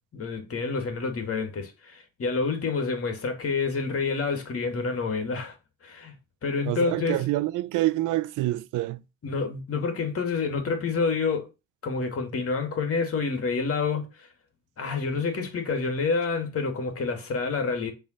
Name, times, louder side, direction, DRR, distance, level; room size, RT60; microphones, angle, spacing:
voice 1, 0.1-5.6 5.8-6.2 6.4-7.2 9.2-11.5 11.8-14.3 14.8-17.9, left 4 dB, 50° left, 2.3 m, -28 dB
voice 2, 6.7-9.0, right 16 dB, 90° right, 0.6 m, -27 dB
7.2 x 3.7 x 6.5 m
cardioid pair, 90°, 30 cm